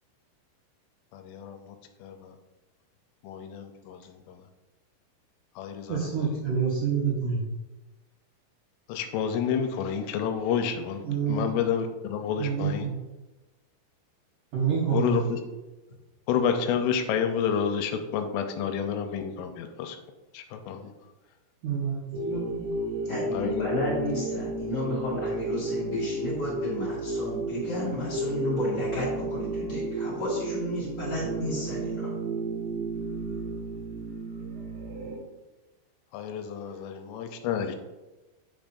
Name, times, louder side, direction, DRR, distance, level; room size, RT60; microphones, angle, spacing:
voice 1, 1.1-1.8 2.0-2.3 3.2-4.4 5.6-6.3 8.9-12.9 14.9-15.4 16.3-20.0 20.3-20.9 23.3-23.7 36.1-37.7, left 7 dB, 90° left, 6 dB, 3.2 m, -29 dB
voice 2, 5.9-7.4 11.0-11.5 12.4-13.0 14.5-15.3 21.6-22.9, right 6 dB, 65° right, -7 dB, 2.0 m, -28 dB
sound 1, 22.1-35.2, right 2 dB, 85° right, 4.3 m, -32 dB
voice 3, 23.0-32.1, left 1 dB, 35° left, -7 dB, 1.8 m, -32 dB
9.3 x 7.3 x 2.6 m, 1.1 s
omnidirectional pair, 5.6 m